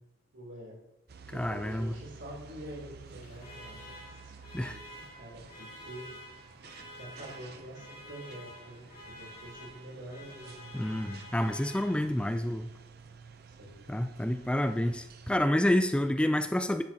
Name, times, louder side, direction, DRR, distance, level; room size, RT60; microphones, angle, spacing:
voice 1, 0.3-0.7 1.3-4.3 4.6-4.8 5.1-6.1 6.9-10.6 13.5-13.8, right 1 dB, 75° right, -3 dB, 3.3 m, -46 dB
sound 1, 1.1-15.5, right 5 dB, 55° right, 0.6 m, -52 dB
voice 2, 1.3-1.9 4.5-4.8 10.7-12.7 13.9-16.8, left 1 dB, 5° left, 9 dB, 0.3 m, -28 dB
Alarm, 3.0-12.4, left 1 dB, 50° left, 2.2 m, -50 dB
10.0 x 8.4 x 2.9 m, 0.87 s
head